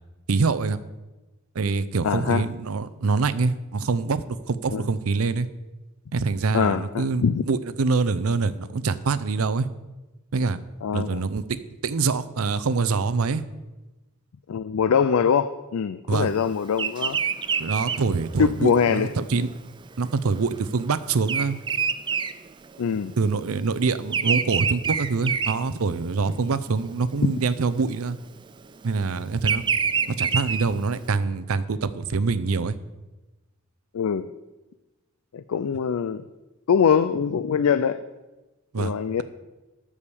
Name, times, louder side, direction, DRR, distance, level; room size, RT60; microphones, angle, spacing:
voice 1, 0.3-0.8 1.5-5.5 6.1-9.7 10.3-10.6 10.9-13.4 16.1-16.3 17.6-19.5 20.0-21.6 23.2-28.2 28.8-29.6 30.1-32.8 38.7-38.9, right 4 dB, 75° right, 14 dB, 0.6 m, -25 dB
voice 2, 2.0-2.4 4.7-4.9 6.5-7.4 10.8-11.2 14.5-17.2 18.4-19.5 22.8-23.1 33.9-34.3 35.3-36.2 36.7-38.0 38.8-39.2, left 7 dB, 75° left, 12 dB, 0.4 m, -23 dB
Bird vocalization bird call bird song, 16.7-23.2 23.4-26.3 26.8-27.1 28.1-31.1, right 6 dB, 20° right, 0.3 m, -27 dB
12.5 x 4.9 x 6.9 m, 1.1 s
head